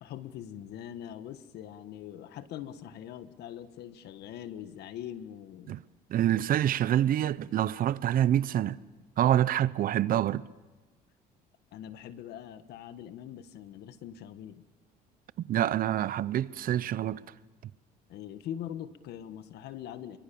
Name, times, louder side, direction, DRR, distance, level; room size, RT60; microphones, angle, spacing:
voice 1, 0.0-5.8 11.7-14.6 18.1-20.2, left 10 dB, 75° left, 1.5 m, -42 dB
voice 2, 6.1-8.8 9.2-10.4 15.4-17.2, right 11 dB, 55° right, 0.8 m, -26 dB
26.5 x 24.0 x 7.1 m
cardioid pair, 110°, 17 cm